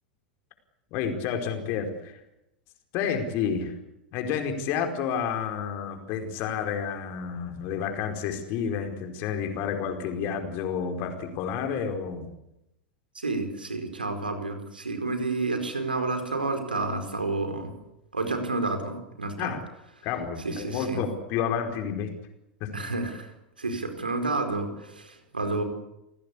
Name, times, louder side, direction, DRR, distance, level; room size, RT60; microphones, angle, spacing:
voice 1, 0.9-2.2 2.9-3.7 4.1-12.3 19.4-19.6 20.0-22.1 22.6-22.7, left 7 dB, 45° left, 5 dB, 4.9 m, -30 dB
voice 2, 13.1-17.7 18.1-19.5 20.4-21.0 22.7-25.6, right 3 dB, 80° right, 6 dB, 4.8 m, -30 dB
29.0 x 19.0 x 8.5 m, 0.87 s
figure-of-eight pair, 85°, 5 cm